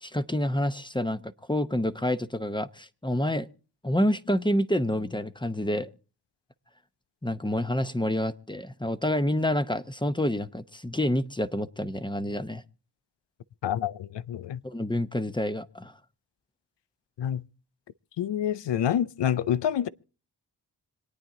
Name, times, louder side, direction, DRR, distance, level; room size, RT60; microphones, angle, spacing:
voice 1, 0.0-3.5 3.8-5.9 7.2-12.6 14.6-15.9, left 1 dB, 10° left, 0.8 m, -28 dB
voice 2, 13.6-14.6 17.2-17.4 18.2-19.9, left 10 dB, 80° left, 0.6 m, -27 dB
26.0 x 9.1 x 3.9 m
cardioid pair, 45°, 42 cm